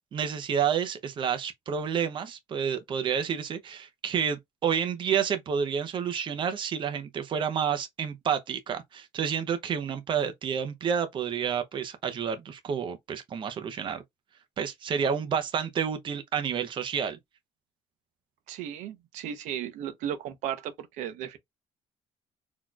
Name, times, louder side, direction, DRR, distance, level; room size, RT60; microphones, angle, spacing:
voice 1, 0.1-14.0 14.6-17.2, right 7 dB, 40° right, 0.7 m, -29 dB
voice 2, 18.5-21.4, right 10 dB, 85° right, 0.8 m, -35 dB
4.1 x 3.0 x 2.4 m
cardioid pair, 125°, 12 cm